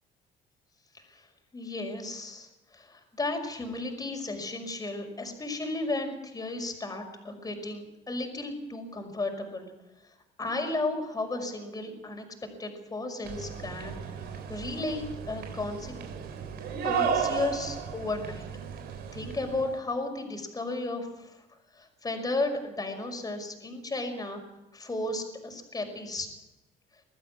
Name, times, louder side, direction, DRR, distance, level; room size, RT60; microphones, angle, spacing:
voice 1, 0.9-1.3 1.5-9.7 10.4-12.2 12.6-14.0 14.5-16.0 16.8-18.5 19.1-21.4 21.7-24.4 24.7-26.3, left 2 dB, 20° left, 3 dB, 5.6 m, -34 dB
sound 1, 13.2-19.8, right 7 dB, 75° right, 3.9 m, -34 dB
21.0 x 14.5 x 9.9 m, 0.99 s
cardioid pair, 110°, 17 cm